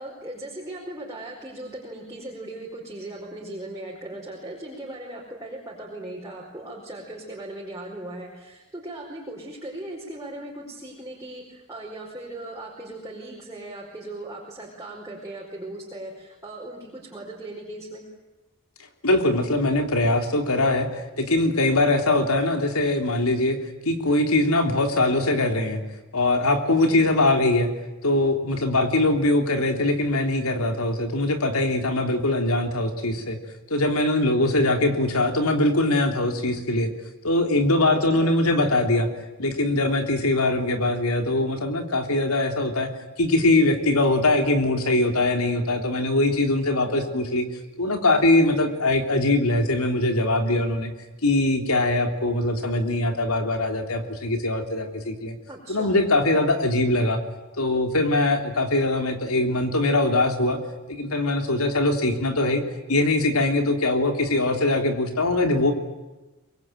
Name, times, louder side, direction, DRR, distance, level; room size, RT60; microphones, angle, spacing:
voice 1, 0.0-18.0 26.8-27.0 38.0-38.4 55.5-56.0, right 1 dB, 15° right, -4 dB, 4.8 m, -38 dB
voice 2, 19.0-23.6 23.8-25.8 26.1-27.7 28.0-33.4 33.7-36.9 37.2-39.1 39.4-42.9 43.2-47.5 47.8-50.9 51.2-55.4 55.7-57.2 57.6-60.6 60.9-62.6 62.9-65.7, left 2 dB, 90° left, 6 dB, 3.5 m, -22 dB
25.0 x 22.5 x 9.2 m, 1.1 s
head